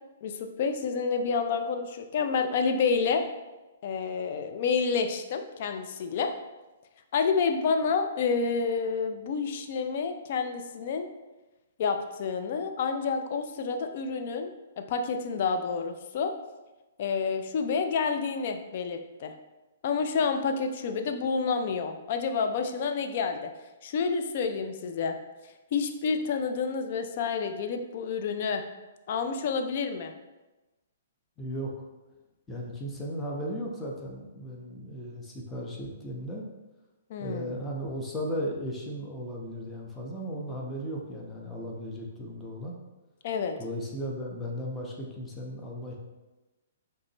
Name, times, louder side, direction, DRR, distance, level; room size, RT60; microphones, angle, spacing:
voice 1, 0.2-3.2 3.8-6.3 7.1-11.1 11.8-16.3 17.0-19.3 19.8-23.5 23.8-25.2 25.7-28.6 29.1-30.1 37.1-37.5 43.2-43.6, left 5 dB, 50° left, 6 dB, 0.5 m, -29 dB
voice 2, 31.4-31.7 32.5-36.5 37.2-42.7 43.6-46.0, equal, 10° left, -2 dB, 0.9 m, -36 dB
5.0 x 3.2 x 3.0 m, 1.1 s
hypercardioid pair, 125°, 0 cm